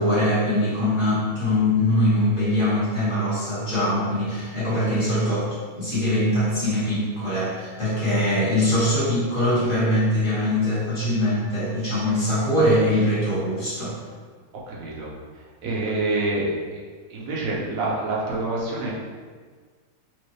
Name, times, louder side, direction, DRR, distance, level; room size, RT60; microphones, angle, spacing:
voice 1, 0.0-5.5 5.8-14.0, left 1 dB, 25° left, -10 dB, 1.5 m, -22 dB
voice 2, 14.7-15.1 15.6-16.5 17.1-18.9, right 2 dB, 65° right, -4 dB, 0.8 m, -26 dB
4.4 x 3.1 x 3.1 m, 1.5 s
omnidirectional pair, 2.3 m